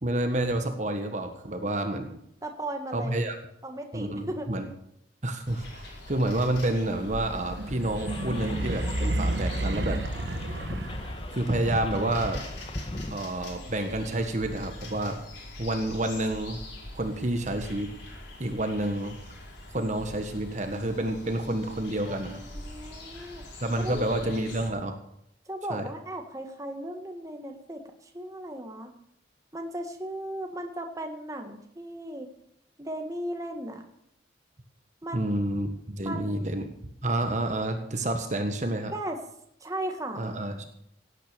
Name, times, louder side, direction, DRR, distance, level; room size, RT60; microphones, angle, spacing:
voice 1, 0.0-2.2 2.9-3.3 3.9-4.7 5.2-10.0 11.3-12.4 13.1-15.2 15.6-16.6 16.9-17.9 18.4-19.2 19.7-22.4 23.6-25.0 25.7-25.9 35.1-36.6 37.0-38.9 40.2-40.7, right 1 dB, 40° right, 6 dB, 1.5 m, -29 dB
voice 2, 2.4-3.1 3.6-4.5 22.1-23.4 23.8-24.1 25.5-28.9 29.5-32.3 32.8-33.8 35.0-35.3 36.0-36.5 38.9-39.2 39.6-40.2, right 1 dB, 20° right, 4 dB, 1.7 m, -36 dB
sound 1, 5.4-24.7, left 1 dB, 85° left, 5.1 m, -43 dB
sound 2, 7.2-11.5, right 1 dB, 70° right, 1.3 m, -31 dB
sound 3, 8.1-13.2, left 1 dB, 30° left, 1.3 m, -37 dB
17.5 x 9.3 x 6.9 m, 0.74 s
head